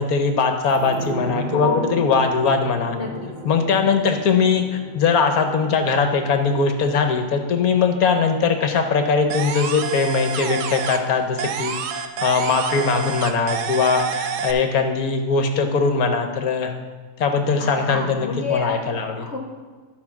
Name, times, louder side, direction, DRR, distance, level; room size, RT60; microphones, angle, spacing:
voice 1, 0.0-3.0 3.4-16.7 17.2-19.3, left 5 dB, 65° left, 5 dB, 1.3 m, -21 dB
sound 1, 0.7-10.0 10.3-10.4, right 1 dB, 30° right, 0.8 m, -36 dB
voice 2, 1.5-2.0 2.9-3.3 17.6-18.8 19.2-19.4, left 5 dB, 45° left, 1 dB, 1.3 m, -28 dB
sound 2, 9.3-11.1 11.4-14.5, right 6 dB, 75° right, 1.2 m, -28 dB
12.0 x 4.5 x 5.9 m, 1.4 s
omnidirectional pair, 1.7 m